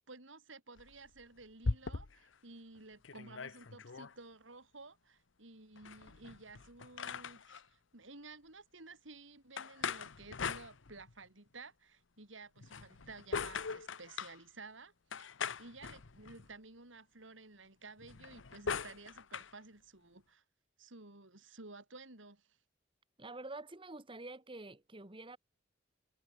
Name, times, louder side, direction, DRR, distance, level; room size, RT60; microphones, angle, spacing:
voice 1, 0.1-15.3 15.6-20.4 20.8-22.5, right 3 dB, 75° right, 3.7 m, -54 dB
sound 1, 0.8-2.3 2.8-2.9 3.0-4.1 5.8-7.6 9.6-11.2 12.6-14.4 15.1-16.5 18.0-19.5, left 5 dB, 70° left, 0.9 m, -41 dB
voice 2, 23.2-25.4, right 2 dB, 25° right, 1.8 m, -47 dB
head